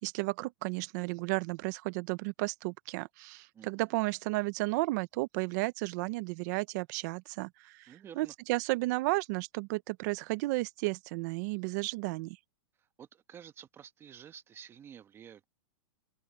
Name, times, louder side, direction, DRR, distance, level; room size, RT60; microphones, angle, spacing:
voice 1, 0.0-12.4, right 22 dB, 40° right, 0.9 m, -33 dB
voice 2, 3.5-3.9 7.9-8.3 13.0-15.5, right 8 dB, 20° right, 1.5 m, -51 dB
open air
supercardioid pair, 155°, 14 cm